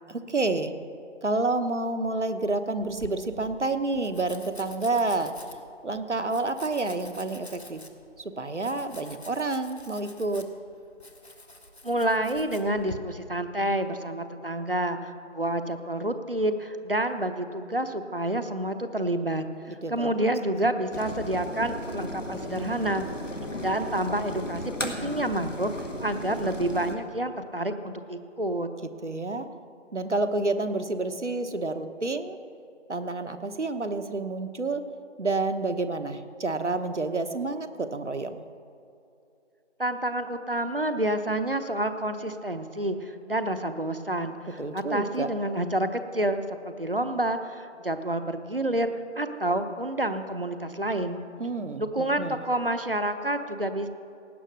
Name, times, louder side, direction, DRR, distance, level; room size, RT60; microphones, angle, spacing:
voice 1, 0.1-0.7 1.2-5.3 5.8-7.8 8.2-10.5 19.7-20.1 29.0-29.5 29.9-32.4 32.9-34.8 35.2-38.4 44.6-45.3 51.4-52.4, right 3 dB, 70° right, 9 dB, 1.1 m, -29 dB
Domestic sounds home sounds, 2.8-13.0, left 1 dB, 60° left, 1.4 m, -47 dB
voice 2, 11.8-23.0 23.6-25.7 26.0-28.7 39.8-51.2 51.8-53.9, right 1 dB, 50° right, 9 dB, 0.8 m, -29 dB
sound 1, 20.9-27.0, left 1 dB, 85° left, 1.9 m, -35 dB
17.5 x 9.2 x 6.4 m, 2.7 s
figure-of-eight pair, 175°, 36 cm